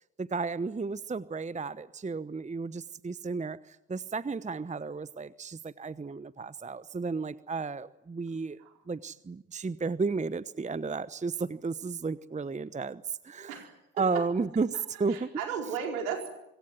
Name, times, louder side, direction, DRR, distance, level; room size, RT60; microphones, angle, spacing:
voice 1, 0.2-8.6 8.9-13.6 14.0-15.4, right 4 dB, 15° right, 17 dB, 1.0 m, -33 dB
voice 2, 13.5-14.2 15.1-16.3, right 7 dB, 80° right, 4 dB, 4.7 m, -35 dB
26.0 x 23.0 x 9.4 m, 0.84 s
hypercardioid pair, 50°, 43 cm